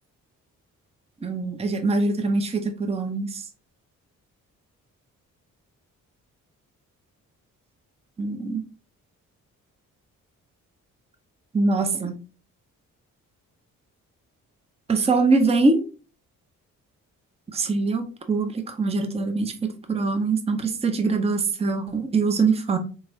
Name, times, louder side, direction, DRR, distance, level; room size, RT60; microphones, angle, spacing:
voice 1, 1.2-3.3 8.2-8.6 11.5-12.1 14.9-15.8 17.5-22.8, right 3 dB, 15° right, 7 dB, 0.6 m, -23 dB
3.4 x 3.2 x 2.6 m, 0.35 s
hypercardioid pair, 40°, 40 cm